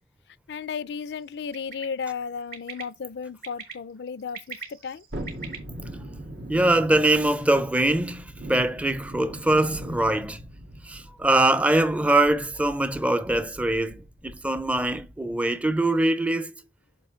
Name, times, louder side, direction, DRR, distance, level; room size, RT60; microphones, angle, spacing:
voice 1, 0.5-5.0, left 6 dB, 70° left, 0.4 m, -34 dB
Bird, 1.5-1.8 2.5-2.8 3.4-3.7 4.2-5.6, right 5 dB, 60° right, 2.1 m, -38 dB
Thunderstorm, 5.1-15.3 15.7-15.8, right 1 dB, 85° right, 1.7 m, -41 dB
voice 2, 6.5-10.4 10.8-16.6, right 1 dB, 10° right, 0.4 m, -23 dB
6.8 x 3.0 x 4.9 m
head